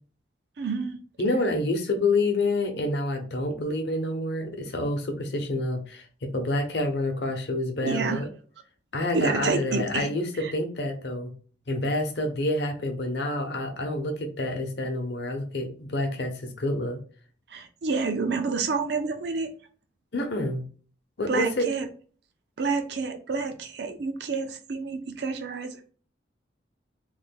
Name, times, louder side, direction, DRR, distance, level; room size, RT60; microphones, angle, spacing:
voice 1, 0.6-1.0 7.8-8.3 9.1-10.1 10.4-10.5 17.5-19.5 21.3-21.9 22.6-25.8, right 4 dB, 65° right, 6 dB, 0.5 m, -29 dB
voice 2, 1.2-8.3 8.9-11.3 11.7-17.0 20.1-20.6 21.2-21.7, left 2 dB, 65° left, 4 dB, 0.8 m, -28 dB
3.2 x 2.2 x 3.5 m, 0.41 s
head